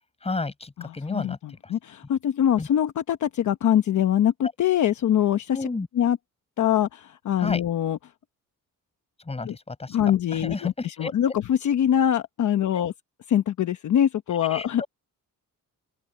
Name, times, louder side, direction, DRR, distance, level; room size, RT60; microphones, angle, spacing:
voice 1, 0.2-1.4 1.6-1.7 2.6-2.7 5.5-5.9 7.4-7.6 9.3-10.0 10.3-11.1 14.3-14.9, left 3 dB, 20° left, 7.9 m, -32 dB
voice 2, 0.8-5.7 5.9-6.2 6.6-8.0 9.4-9.6 9.9-12.9 13.3-14.8, left 10 dB, 60° left, 1.0 m, -23 dB
open air
wide cardioid pair, 170°, 34 cm